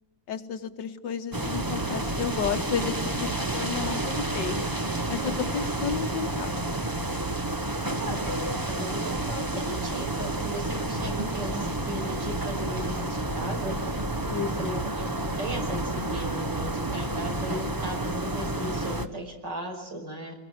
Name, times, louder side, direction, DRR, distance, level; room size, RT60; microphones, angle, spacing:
voice 1, 0.3-4.6 5.1-6.6 14.3-14.9, left 7 dB, 80° left, 8 dB, 1.9 m, -32 dB
sound 1, 1.3-19.1, right 2 dB, 15° right, 0.7 m, -30 dB
voice 2, 7.6-15.1 15.4-20.3, right 1 dB, 75° right, 2 dB, 6.1 m, -37 dB
28.0 x 21.5 x 7.9 m, 1.0 s
omnidirectional pair, 1.9 m